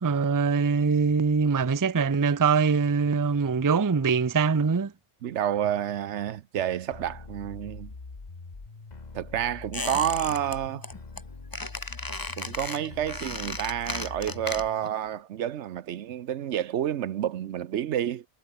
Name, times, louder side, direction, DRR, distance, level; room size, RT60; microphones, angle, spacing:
voice 1, 0.0-4.9, right 5 dB, 25° right, 0.5 m, -23 dB
voice 2, 5.2-7.9 9.1-10.9 12.4-18.2, right 10 dB, 80° right, 1.0 m, -29 dB
sound 1, 6.9-14.9, left 3 dB, 40° left, 1.7 m, -43 dB
Squeak, 9.7-10.6 10.8-11.2 11.5-14.9 15.2-15.3, left 2 dB, 20° left, 1.4 m, -35 dB
omnidirectional pair, 1.2 m